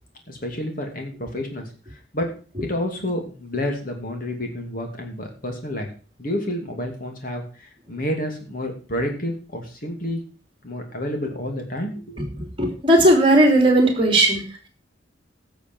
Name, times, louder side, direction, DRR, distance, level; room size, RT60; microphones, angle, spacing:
voice 1, 0.3-2.3 2.6-5.9 6.2-10.2 10.6-12.2, left 1 dB, 45° left, 3 dB, 2.7 m, -29 dB
voice 2, 12.4-14.7, right 1 dB, 25° right, 3 dB, 3.0 m, -17 dB
16.5 x 6.9 x 4.7 m, 0.37 s
head